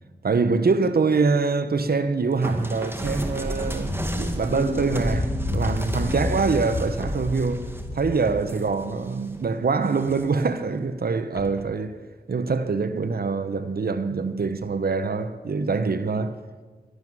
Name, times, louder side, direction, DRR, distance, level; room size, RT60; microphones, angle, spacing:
voice 1, 0.2-12.0 12.3-16.4, right 4 dB, 70° right, 1.0 m, -24 dB
sound 1, 2.4-9.4 9.9-10.5 11.4-11.7, equal, 15° right, 2.2 m, -33 dB
sound 2, 3.8-8.5, left 2 dB, 85° left, 3.7 m, -30 dB
12.5 x 11.5 x 9.6 m
cardioid pair, 45°, 17 cm